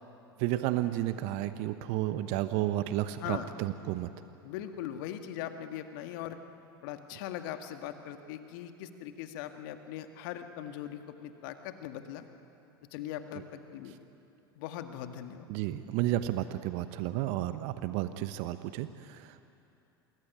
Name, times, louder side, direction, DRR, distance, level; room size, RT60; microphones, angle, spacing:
voice 1, 0.4-4.1 15.5-19.4, right 14 dB, 55° right, 11 dB, 1.0 m, -32 dB
voice 2, 4.4-6.4 6.8-12.3 12.9-14.0 14.5-15.4, left 11 dB, 60° left, 7 dB, 1.9 m, -40 dB
27.5 x 21.5 x 9.6 m, 2.9 s
figure-of-eight pair, 80°, 13 cm